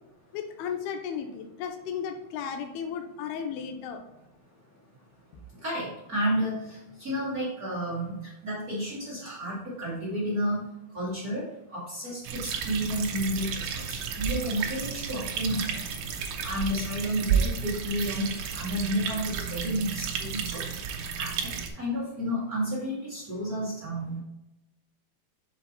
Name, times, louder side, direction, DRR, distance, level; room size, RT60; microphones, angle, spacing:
voice 1, 0.3-4.0, left 7 dB, 80° left, 4 dB, 2.8 m, -34 dB
voice 2, 5.6-10.6 10.9-11.5 11.7-15.8 16.4-20.8 21.2-24.2, equal, 30° right, -7 dB, 1.7 m, -31 dB
sound 1, 12.2-21.7, right 7 dB, 90° right, 1.7 m, -32 dB
7.0 x 5.0 x 4.1 m, 0.93 s
omnidirectional pair, 4.8 m